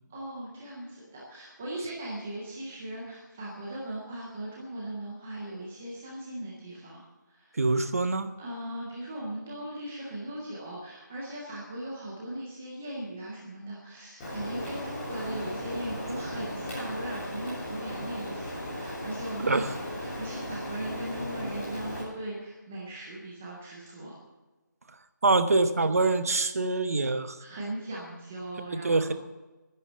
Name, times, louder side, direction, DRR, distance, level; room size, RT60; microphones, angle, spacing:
voice 1, 0.1-7.6 8.4-24.2 27.4-29.1, right 1 dB, 5° right, -4 dB, 0.4 m, -38 dB
voice 2, 7.6-8.3 19.4-19.7 25.2-27.4 28.7-29.1, right 3 dB, 50° right, 11 dB, 1.0 m, -25 dB
Rain, 14.2-22.0, equal, 15° left, 3.4 m, -36 dB
10.5 x 10.5 x 8.3 m, 1.2 s
figure-of-eight pair, 175°, 10 cm